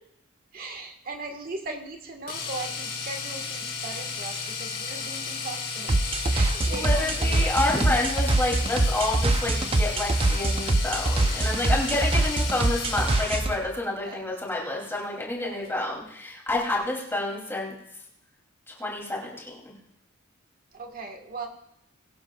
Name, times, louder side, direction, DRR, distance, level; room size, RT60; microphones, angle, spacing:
voice 1, 0.5-6.0 6.3-7.5 14.0-14.3 15.4-15.7 20.7-21.5, right 3 dB, 40° right, 4 dB, 1.5 m, -38 dB
Domestic sounds home sounds, 2.3-13.5 15.6-15.8 16.1-16.2, left 5 dB, 45° left, 5.5 m, -34 dB
sound 1, 5.9-13.6, right 2 dB, 25° right, 0.6 m, -24 dB
voice 2, 6.6-17.7 18.7-19.7, left 2 dB, 10° left, -3 dB, 2.8 m, -29 dB
22.0 x 11.5 x 2.4 m, 0.77 s
head